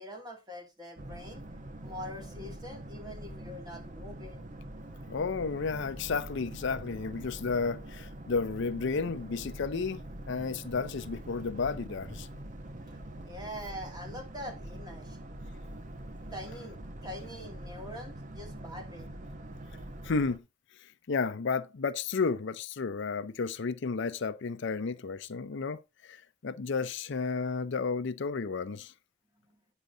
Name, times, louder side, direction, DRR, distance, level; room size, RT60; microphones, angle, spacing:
voice 1, 0.0-1.5 1.8-4.4 13.2-15.2 16.1-19.1 29.5-29.6, equal, 20° right, 2.4 m, -44 dB
Boat Water vehicle, 1.0-20.4, right 1 dB, 40° right, 0.9 m, -44 dB
voice 2, 5.1-10.0 10.3-12.3 20.0-20.4 20.8-28.9, left 4 dB, 65° left, 0.5 m, -32 dB
9.2 x 6.8 x 3.8 m
head